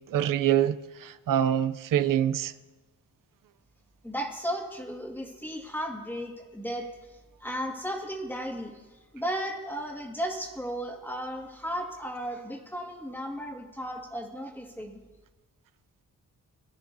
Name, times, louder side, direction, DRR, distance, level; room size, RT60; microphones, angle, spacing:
voice 1, 0.1-2.5, right 10 dB, 85° right, 0.6 m, -25 dB
voice 2, 4.0-8.8 9.1-15.0, equal, 5° left, 1.9 m, -35 dB
22.5 x 12.5 x 2.7 m
wide cardioid pair, 110°, 32 cm